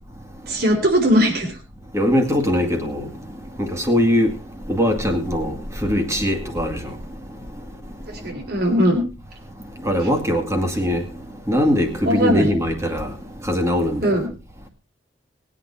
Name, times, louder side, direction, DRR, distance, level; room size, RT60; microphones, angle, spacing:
voice 1, 0.5-1.5 8.2-9.0 12.1-12.5 14.0-14.3, equal, 55° right, 3.8 m, -19 dB
voice 2, 1.9-3.0 3.6-4.3 4.7-5.5 5.8-6.8 9.8-11.0 11.5-13.1 13.5-14.1, equal, 15° right, 2.1 m, -20 dB
19.5 x 8.9 x 4.3 m
head